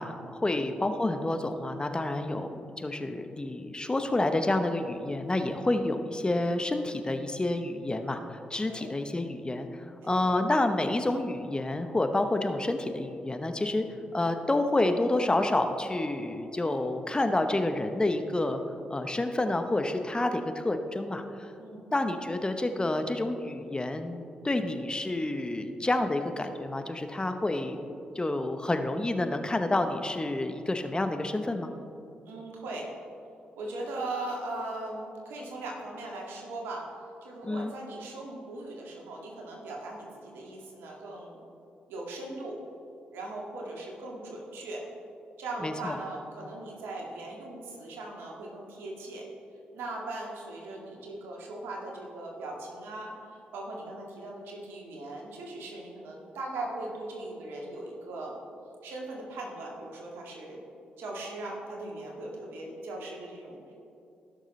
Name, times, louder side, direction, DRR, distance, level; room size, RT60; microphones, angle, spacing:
voice 1, 0.0-13.8 14.1-18.6 18.9-21.5 21.9-27.8 28.1-31.7 37.4-37.7 45.6-46.0, left 2 dB, 25° left, 7 dB, 0.9 m, -29 dB
voice 2, 10.0-10.3 21.6-21.9 32.3-32.9 33.6-36.8 37.2-41.4 41.9-42.6 43.1-44.8 45.4-49.2 49.7-58.4 58.8-60.6 61.0-63.7, right 2 dB, 75° right, -1 dB, 1.9 m, -39 dB
16.0 x 6.4 x 3.2 m, 2.7 s
hypercardioid pair, 40°, 4 cm